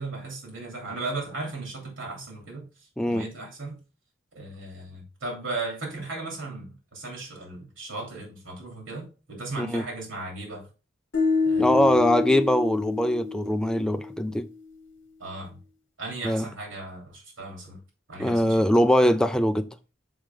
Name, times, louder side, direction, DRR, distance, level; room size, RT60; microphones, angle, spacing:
voice 1, 0.0-3.8 4.3-10.7 11.4-12.0 15.2-15.6 16.0-17.8 18.1-18.6, right 2 dB, 85° right, 3.1 m, -36 dB
voice 2, 3.0-3.3 9.6-9.8 11.6-14.5 16.2-16.4 18.2-19.7, equal, 5° left, 0.4 m, -22 dB
sound 1, 11.1-14.3, left 4 dB, 65° left, 1.2 m, -27 dB
6.2 x 5.0 x 3.7 m
head